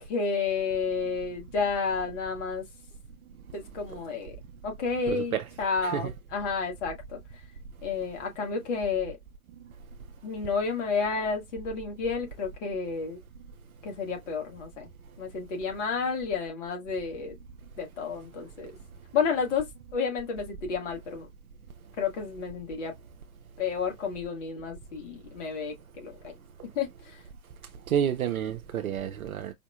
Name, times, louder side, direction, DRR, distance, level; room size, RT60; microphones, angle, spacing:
voice 1, 0.0-2.6 3.5-4.4 4.6-7.2 7.8-9.2 10.2-13.2 13.8-14.9 15.2-17.4 17.8-18.7 19.1-19.6 19.9-21.3 22.0-22.9 23.6-26.3 26.8-27.2, left 5 dB, 50° left, 1.6 m, -31 dB
voice 2, 5.1-5.4 5.8-6.1 27.9-29.5, right 9 dB, 70° right, 0.6 m, -29 dB
4.9 x 2.7 x 2.3 m
figure-of-eight pair, 105°, 45 cm